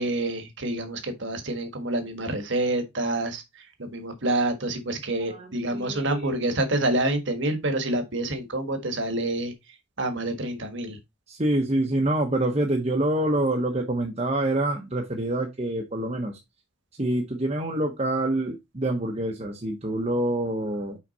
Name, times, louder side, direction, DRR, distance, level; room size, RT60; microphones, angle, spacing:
voice 1, 0.0-3.4 3.8-9.5 10.0-11.0, right 1 dB, 60° right, 1.6 m, -27 dB
voice 2, 5.3-6.3 11.3-16.4 17.0-21.0, right 1 dB, 30° right, 1.0 m, -26 dB
6.1 x 5.0 x 4.1 m
head